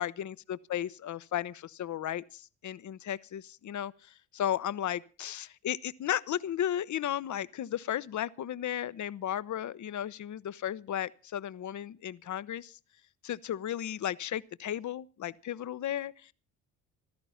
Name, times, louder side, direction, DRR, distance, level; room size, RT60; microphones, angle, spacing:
voice 1, 0.0-12.8 13.2-16.3, left 11 dB, 45° left, 0.9 m, -35 dB
16.0 x 13.5 x 5.7 m
hypercardioid pair, 50°, 41 cm